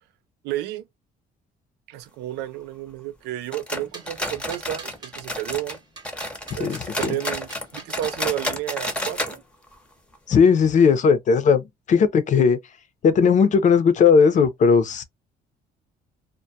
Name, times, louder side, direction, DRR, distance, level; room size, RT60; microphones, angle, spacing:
voice 1, 0.4-0.8 1.9-5.8 6.5-9.4, right 13 dB, 85° right, 0.4 m, -31 dB
sound 1, 3.5-5.8 6.0-9.4 9.6-9.7 10.1-10.2 10.8-10.9, left 1 dB, 5° left, 0.7 m, -31 dB
sound 2, 3.9-5.2 5.7-8.2, right 4 dB, 25° right, 0.9 m, -43 dB
voice 2, 6.6-7.2 10.3-12.6 13.0-15.0, left 6 dB, 45° left, 0.6 m, -17 dB
2.2 x 2.1 x 2.6 m
cardioid pair, 110°, 17 cm